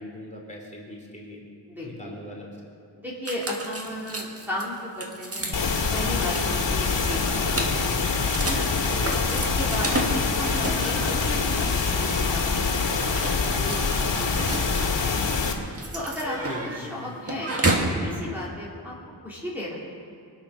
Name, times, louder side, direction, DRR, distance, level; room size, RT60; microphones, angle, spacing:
voice 1, 0.0-1.4 1.8-2.5 8.9-9.3 16.4-17.1, left 1 dB, 15° left, -3 dB, 3.1 m, -39 dB
voice 2, 1.7-2.2 3.0-5.6 5.9-8.0 8.4-8.7 9.1-12.4 12.7-15.4 15.9-16.4 16.6-18.9 19.2-19.8, left 1 dB, 5° right, -8 dB, 2.7 m, -35 dB
sound 1, 3.2-18.0, right 1 dB, 35° right, 1.6 m, -32 dB
sound 2, 5.5-15.5, left 4 dB, 90° left, 1.8 m, -25 dB
24.0 x 8.9 x 6.2 m, 2.3 s
wide cardioid pair, 155°, 43 cm